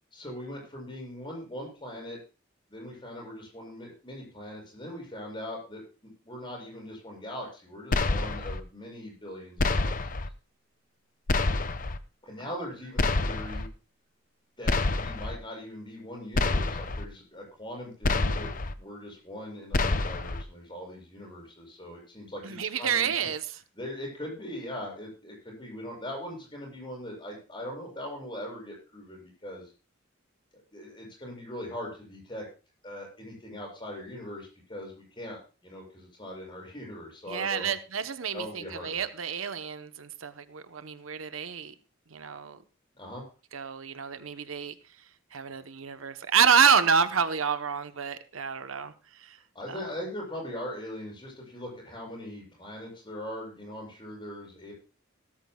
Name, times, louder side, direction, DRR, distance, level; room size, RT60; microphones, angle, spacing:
voice 1, 0.1-2.2 2.7-9.9 12.2-13.7 14.6-23.1 23.8-29.7 30.7-32.5 32.8-37.7 38.3-39.0 43.0-43.2 49.5-54.7, left 1 dB, 25° left, -1 dB, 7.3 m, -40 dB
sound 1, 7.9-8.6 9.6-10.3 11.3-12.0 13.0-13.7 14.7-15.4 16.3-17.0 18.0-18.7 19.7-20.4, left 3 dB, 40° left, 0.7 m, -27 dB
voice 2, 22.4-23.6 37.3-41.7 42.1-42.6 43.5-44.7 45.3-48.9 49.2-49.4 49.7-49.8, right 6 dB, 85° right, 10 dB, 0.9 m, -28 dB
17.5 x 13.5 x 2.3 m, 0.33 s
head